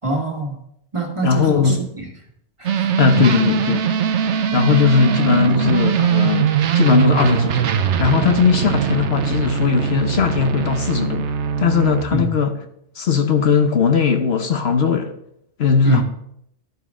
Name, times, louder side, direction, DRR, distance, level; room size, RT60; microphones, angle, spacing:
voice 1, 0.0-0.6 0.9-2.1 2.6-3.3 12.1-12.3 15.8-16.0, right 3 dB, 25° right, 1.7 m, -25 dB
voice 2, 1.2-1.8 3.0-3.9 4.5-12.6 13.0-15.1 15.6-16.0, left 5 dB, 65° left, 1.1 m, -18 dB
sound 1, 2.7-12.0, right 8 dB, 80° right, 1.0 m, -21 dB
12.5 x 9.2 x 3.7 m
omnidirectional pair, 1.2 m